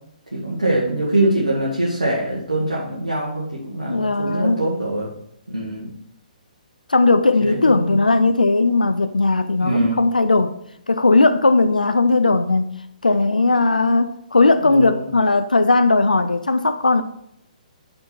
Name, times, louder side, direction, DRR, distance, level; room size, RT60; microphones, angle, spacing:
voice 1, 0.3-5.1 5.5-5.9 7.4-8.1 9.6-10.0 14.6-15.1, right 1 dB, 80° right, -6 dB, 2.0 m, -23 dB
voice 2, 3.9-4.6 6.9-10.5 10.9-12.7 13.0-17.0, left 3 dB, 80° left, 10 dB, 0.4 m, -17 dB
6.5 x 6.1 x 4.4 m, 0.76 s
figure-of-eight pair, 130°, 4 cm